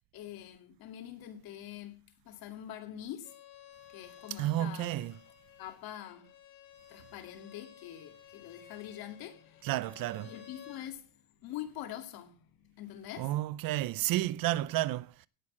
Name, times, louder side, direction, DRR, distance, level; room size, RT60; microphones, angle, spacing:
voice 1, 0.1-3.4 3.9-5.2 5.6-6.4 6.9-9.7 10.2-13.4, left 11 dB, 80° left, 2.4 m, -45 dB
Bowed string instrument, 3.2-10.8, left 11 dB, 65° left, 3.0 m, -55 dB
voice 2, 4.4-5.1 9.6-10.3 13.2-15.3, right 15 dB, 70° right, 0.7 m, -31 dB
17.5 x 6.4 x 7.3 m
cardioid pair, 160°, 35 cm